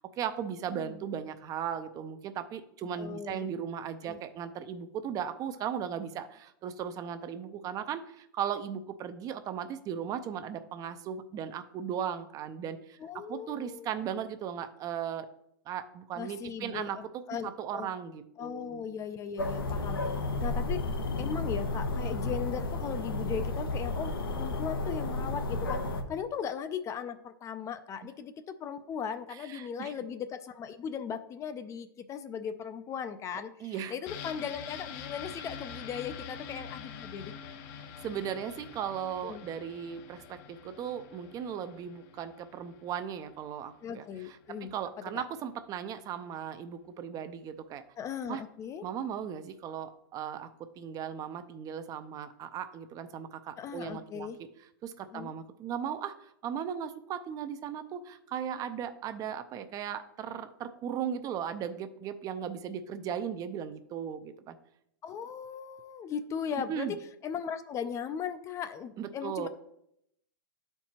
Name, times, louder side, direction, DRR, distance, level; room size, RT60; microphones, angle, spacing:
voice 1, 0.0-13.0 13.3-15.3 15.7-18.9 29.3-29.9 33.6-33.9 38.0-47.8 48.3-48.4 48.8-54.3 54.8-64.6 66.7-66.9 69.0-69.5, right 8 dB, 30° right, 10 dB, 0.5 m, -37 dB
voice 2, 3.0-3.5 4.0-4.2 13.0-13.9 16.2-17.9 18.4-20.0 20.4-25.8 26.1-37.3 37.8-37.9 39.2-39.5 43.8-44.7 45.1-45.3 48.0-48.8 53.6-54.4 55.1-55.3 65.0-67.0 67.2-69.5, left 7 dB, 25° left, 11 dB, 0.5 m, -38 dB
sound 1, 19.4-26.0, left 2 dB, 85° left, 0.9 m, -32 dB
sound 2, 34.1-43.7 44.0-44.1, left 7 dB, 50° left, 0.8 m, -46 dB
12.0 x 4.5 x 2.9 m, 0.77 s
hypercardioid pair, 115°, 12 cm